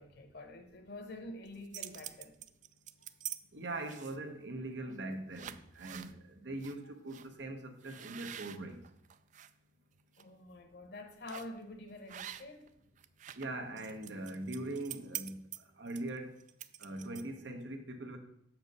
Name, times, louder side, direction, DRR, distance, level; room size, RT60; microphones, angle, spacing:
voice 1, 0.0-2.4 10.2-12.7, left 2 dB, 60° left, 1.0 m, -47 dB
sound 1, 1.5-3.4 3.8-4.3 4.9-5.0 5.3-6.1 6.6-6.8 7.1-7.3 7.8-9.5 10.0-10.2 11.3-11.6 12.1-12.7 13.0-17.5, right 11 dB, 45° right, 0.3 m, -46 dB
voice 2, 3.5-8.8 13.3-15.4 15.8-16.3 16.8-18.2, right 2 dB, 80° right, 1.1 m, -41 dB
6.5 x 4.6 x 6.6 m
head